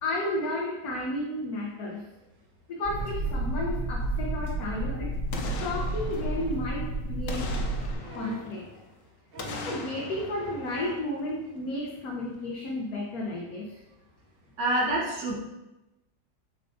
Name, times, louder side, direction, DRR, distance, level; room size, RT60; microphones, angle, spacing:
voice 1, 0.0-2.0 2.7-5.1 5.6-7.4 8.1-8.6 9.6-13.8, left 1 dB, 60° left, -3 dB, 1.4 m, -32 dB
sound 1, 2.8-7.9, right 2 dB, 10° left, 2.5 m, -31 dB
Boom, 5.3-6.8 7.3-8.9 9.4-11.6 12.0-12.1, left 4 dB, 90° left, 1.5 m, -40 dB
sound 2, 8.0-8.5 9.3-9.9 10.6-11.1 12.3-12.4, right 2 dB, 50° right, 0.7 m, -44 dB
voice 2, 14.6-15.3, right 1 dB, 75° right, -4 dB, 2.0 m, -26 dB
6.9 x 6.7 x 2.7 m, 0.97 s
omnidirectional pair, 1.9 m